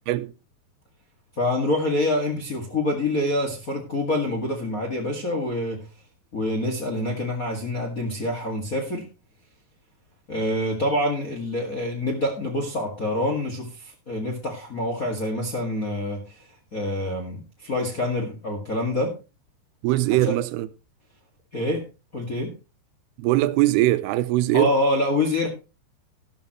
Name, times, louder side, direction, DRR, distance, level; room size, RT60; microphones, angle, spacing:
voice 1, 1.4-5.9 6.3-9.1 10.3-19.1 20.2-20.4 21.5-21.8 22.1-22.5 24.5-25.5, left 1 dB, 35° left, 1.4 m, -26 dB
voice 2, 19.8-20.7 23.2-24.7, right 16 dB, 80° right, 2.6 m, -21 dB
12.5 x 12.5 x 3.0 m
omnidirectional pair, 4.6 m